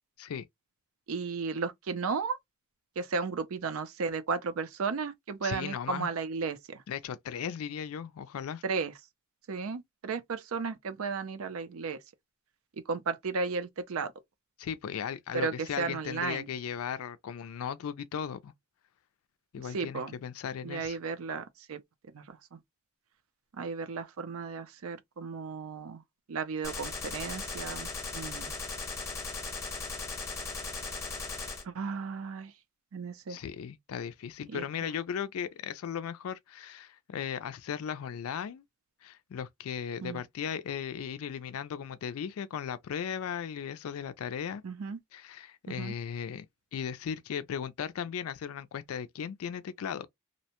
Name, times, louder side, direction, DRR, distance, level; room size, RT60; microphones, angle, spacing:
voice 1, 1.1-2.4 3.0-6.8 8.6-8.9 9.5-12.0 12.8-14.1 15.3-16.5 19.7-20.1 20.6-21.8 22.1-22.6 23.5-26.0 26.3-28.5 31.6-32.5 32.9-33.4 34.5-34.9 40.0-40.2 44.6-45.0 45.7-45.9, right 5 dB, 70° right, 0.5 m, -34 dB
voice 2, 5.4-6.1 6.9-8.6 14.6-18.5 19.5-21.0 33.3-38.6 39.0-44.6 45.1-46.5 46.7-50.1, left 8 dB, 75° left, 0.4 m, -37 dB
Gunshot gunfire, 26.6-31.6, left 3 dB, 15° left, 0.8 m, -37 dB
2.7 x 2.1 x 2.8 m
head